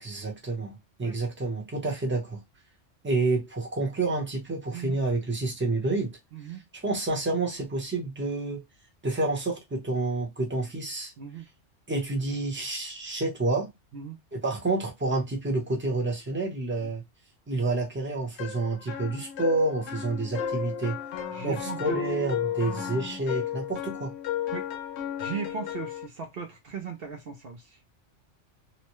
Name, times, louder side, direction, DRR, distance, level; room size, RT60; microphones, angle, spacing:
voice 1, 0.0-2.4 3.0-6.1 6.7-8.6 9.0-11.1 11.9-13.7 14.3-17.0 17.5-21.0 21.4-24.1, right 2 dB, 10° right, 0.8 m, -29 dB
sound 1, 18.4-26.1, left 9 dB, 70° left, 0.8 m, -34 dB
voice 2, 21.3-22.0 24.5-24.7 25.2-27.8, right 6 dB, 60° right, 0.7 m, -37 dB
2.9 x 2.1 x 3.0 m
omnidirectional pair, 1.3 m